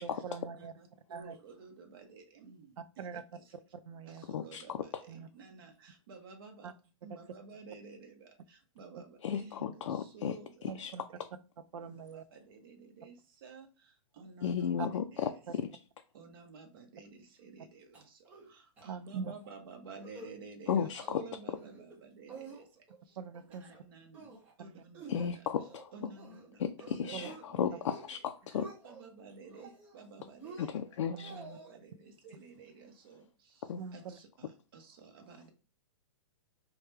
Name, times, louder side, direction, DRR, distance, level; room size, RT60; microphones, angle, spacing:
voice 1, 0.0-0.7 1.1-1.4 2.8-3.2 3.5-4.2 5.1-5.3 6.6-6.7 10.7-11.0 11.7-12.2 14.8-14.9 18.9-19.3 23.2-23.7 24.6-24.7 27.1-27.3 31.1-31.6 33.8-34.2, right 6 dB, 75° right, 0.5 m, -43 dB
voice 2, 0.6-2.7 3.0-3.4 4.1-6.7 7.0-10.9 11.1-11.3 12.1-15.4 16.1-23.2 23.4-25.4 25.9-28.2 28.5-30.8 31.3-35.5, right 4 dB, 45° right, 1.0 m, -52 dB
voice 3, 4.3-5.0 9.2-10.4 10.8-10.9 14.4-15.3 20.7-21.2 25.1-25.9 26.6-28.7 30.6-31.3 33.7-33.8, left 8 dB, 70° left, 0.4 m, -34 dB
sound 1, 17.9-18.5 18.8-18.9 19.2-19.5 19.9-20.3 20.7-21.1 21.5-22.0 22.3-23.0 23.3-23.8 24.1-24.5 24.9-26.5 26.8-27.4 27.8-28.2 28.4-29.1 29.5-30.0 30.4-31.7, right 3 dB, 10° right, 0.4 m, -50 dB
4.6 x 2.2 x 3.3 m
hypercardioid pair, 170°, 16 cm